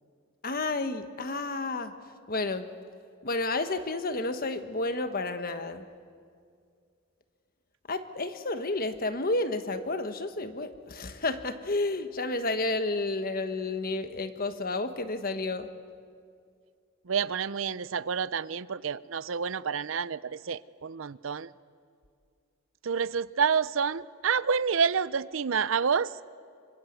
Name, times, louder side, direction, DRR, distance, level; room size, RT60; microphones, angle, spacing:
voice 1, 0.4-1.9 2.3-2.7 3.2-5.9 7.9-15.7, left 2 dB, 45° left, 9 dB, 1.4 m, -31 dB
voice 2, 17.0-21.5 22.8-26.2, right 6 dB, 70° right, 18 dB, 0.6 m, -28 dB
26.0 x 25.5 x 8.2 m, 2.3 s
head